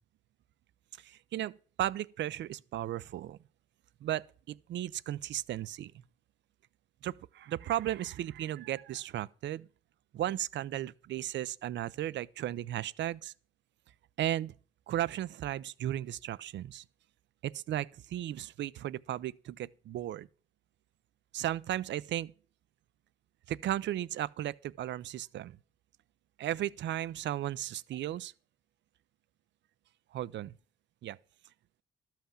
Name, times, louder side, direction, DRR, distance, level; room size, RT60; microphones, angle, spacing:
voice 1, 1.0-3.4 4.0-5.9 7.0-9.7 10.1-13.3 14.2-14.5 14.9-16.8 17.4-20.3 21.3-22.3 23.5-25.6 26.4-28.3 30.1-30.5 31.0-31.2, right 12 dB, 65° right, 0.5 m, -35 dB
12.5 x 5.8 x 7.2 m
cardioid pair, 90°, 20 cm